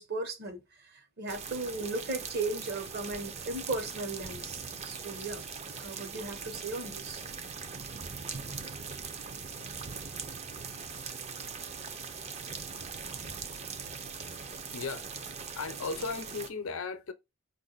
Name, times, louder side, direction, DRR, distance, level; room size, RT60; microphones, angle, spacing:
voice 1, 0.0-5.4 5.8-7.2, right 3 dB, 50° right, 1.0 m, -36 dB
sound 1, 1.3-16.5, right 5 dB, 30° right, 0.5 m, -41 dB
voice 2, 14.7-17.1, left 4 dB, 90° left, 0.6 m, -37 dB
5.0 x 2.5 x 3.9 m
head